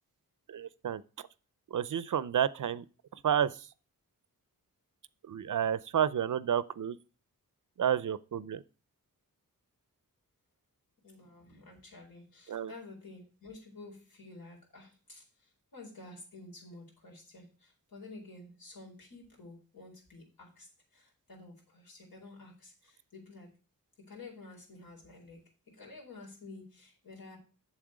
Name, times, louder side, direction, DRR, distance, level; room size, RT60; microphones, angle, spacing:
voice 1, 0.5-1.3 1.7-2.8 3.1-3.7 5.2-7.0 7.8-8.6 12.5-12.7, right 9 dB, 60° right, 0.5 m, -31 dB
voice 2, 11.0-23.5 24.0-27.4, left 2 dB, 80° left, 4.4 m, -51 dB
7.5 x 7.4 x 4.9 m
wide cardioid pair, 115°, 35 cm